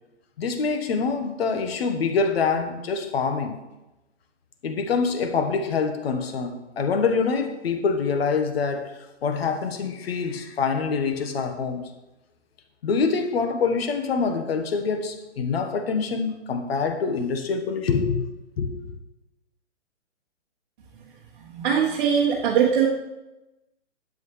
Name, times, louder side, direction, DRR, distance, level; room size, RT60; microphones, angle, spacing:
voice 1, 0.4-3.6 4.6-11.9 12.8-18.3 18.6-18.7, left 5 dB, 55° left, 6 dB, 1.3 m, -25 dB
voice 2, 21.5-22.9, right 7 dB, 40° right, -3 dB, 1.2 m, -21 dB
11.0 x 7.5 x 3.2 m, 1.0 s
hypercardioid pair, 145°, 36 cm